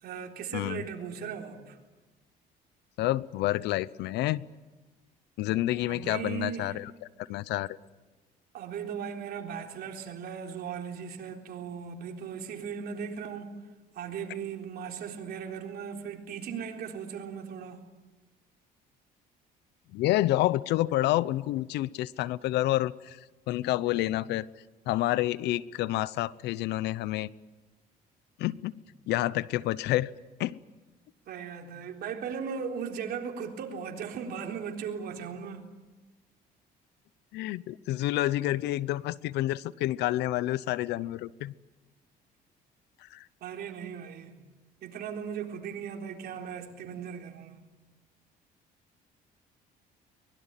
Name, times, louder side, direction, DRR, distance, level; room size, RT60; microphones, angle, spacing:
voice 1, 0.0-1.8 5.9-6.8 8.5-13.6 13.9-17.8 31.3-35.6 43.4-44.4 44.8-47.6, right 7 dB, 70° right, 3.9 m, -37 dB
voice 2, 0.5-0.8 3.0-4.4 5.4-6.9 7.2-7.8 19.9-23.2 23.5-24.5 24.9-27.3 28.4-28.8 29.1-30.1 30.4-30.6 37.3-41.5 43.0-43.3, left 15 dB, 85° left, 0.8 m, -29 dB
23.5 x 21.5 x 9.1 m
cardioid pair, 110°, 17 cm